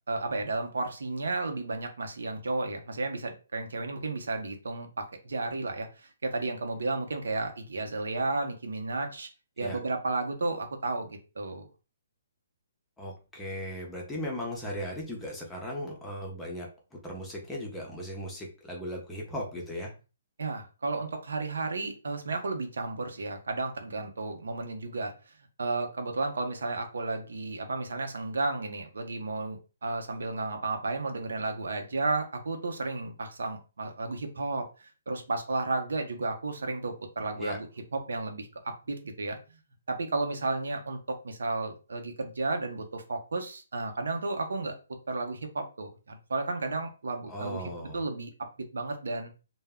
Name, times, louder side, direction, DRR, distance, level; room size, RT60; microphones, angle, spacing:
voice 1, 0.1-9.3 9.6-11.7 20.4-25.3 25.6-37.7 37.9-39.4 39.9-44.8 45.1-47.6 47.9-48.3 48.7-49.3, right 3 dB, 80° right, 5 dB, 0.6 m, -33 dB
voice 2, 13.0-16.7 17.0-19.9 37.4-37.6 47.3-48.0, equal, 5° left, -2 dB, 0.6 m, -37 dB
2.1 x 2.0 x 3.4 m, 0.32 s
hypercardioid pair, 155°, 0 cm